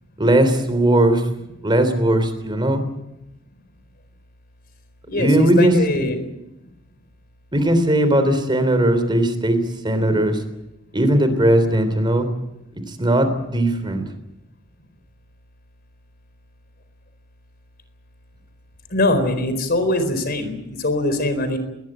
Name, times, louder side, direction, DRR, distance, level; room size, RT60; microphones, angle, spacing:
voice 1, 0.2-1.2 1.6-2.8 5.2-6.1 7.5-10.4 10.9-12.3 13.0-14.0, right 1 dB, 25° right, 10 dB, 3.5 m, -18 dB
voice 2, 5.1-6.2 18.9-21.6, left 1 dB, 50° left, 10 dB, 4.4 m, -22 dB
21.5 x 20.0 x 9.0 m, 0.90 s
head